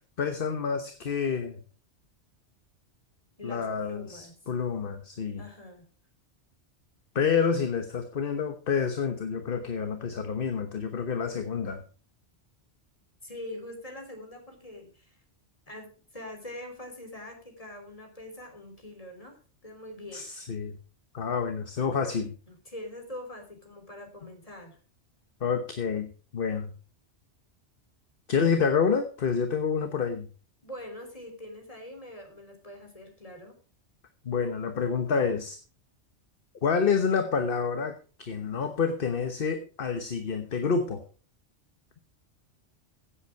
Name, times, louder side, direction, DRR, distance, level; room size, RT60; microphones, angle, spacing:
voice 1, 0.2-1.6 3.4-5.4 7.1-11.8 20.1-20.8 21.1-22.3 25.4-26.7 28.3-30.3 34.2-35.6 36.6-41.0, left 6 dB, 50° left, 7 dB, 1.3 m, -28 dB
voice 2, 3.4-4.5 5.4-5.9 13.2-15.2 15.7-20.3 22.5-24.8 30.6-33.6, left 1 dB, 30° left, 4 dB, 3.5 m, -43 dB
15.5 x 8.2 x 4.5 m, 0.38 s
omnidirectional pair, 1.2 m